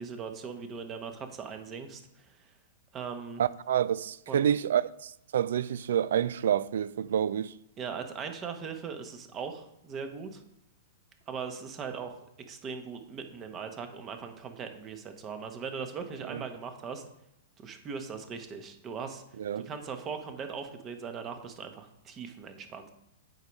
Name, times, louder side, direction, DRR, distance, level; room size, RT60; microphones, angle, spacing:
voice 1, 0.0-2.6 2.9-3.4 4.3-4.6 7.8-10.4 11.3-12.2 12.5-17.0 17.6-19.2 19.5-22.9, right 6 dB, 30° right, 1.1 m, -39 dB
voice 2, 3.4-7.5 16.3-16.4 19.4-19.7, right 9 dB, 70° right, 0.3 m, -28 dB
7.9 x 4.6 x 5.3 m
hypercardioid pair, 115°, 0 cm